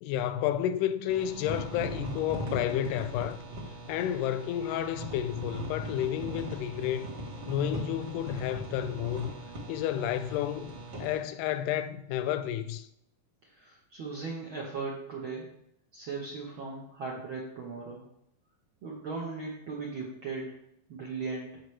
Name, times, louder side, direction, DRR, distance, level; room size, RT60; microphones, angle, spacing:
voice 1, 0.0-3.4 3.9-7.1 7.5-9.3 9.7-10.7 11.0-12.9, left 11 dB, 80° left, 2.1 m, -31 dB
sound 1, 1.1-11.2, right 1 dB, 45° right, 1.5 m, -40 dB
voice 2, 13.5-15.5 15.9-18.0 18.8-20.5 20.9-21.6, right 4 dB, 65° right, 1.2 m, -38 dB
14.0 x 5.1 x 3.2 m
omnidirectional pair, 3.8 m